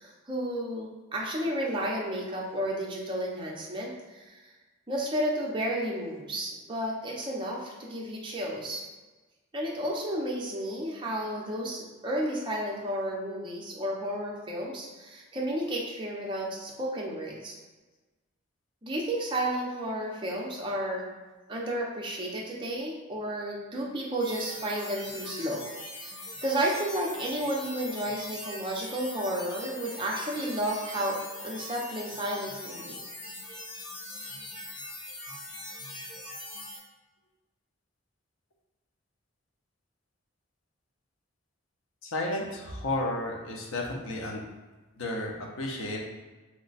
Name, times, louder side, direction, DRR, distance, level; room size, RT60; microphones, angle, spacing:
voice 1, 0.0-4.4 4.9-8.8 9.5-17.6 18.8-21.1 21.5-25.7 25.9-31.2 31.4-33.0, right 1 dB, 25° right, -3 dB, 0.6 m, -32 dB
sound 1, 24.2-36.8, left 1 dB, 60° left, 0.8 m, -41 dB
voice 2, 42.0-44.4 45.0-46.0, left 1 dB, 90° left, 0 dB, 0.7 m, -32 dB
3.0 x 2.2 x 4.0 m, 1.2 s
head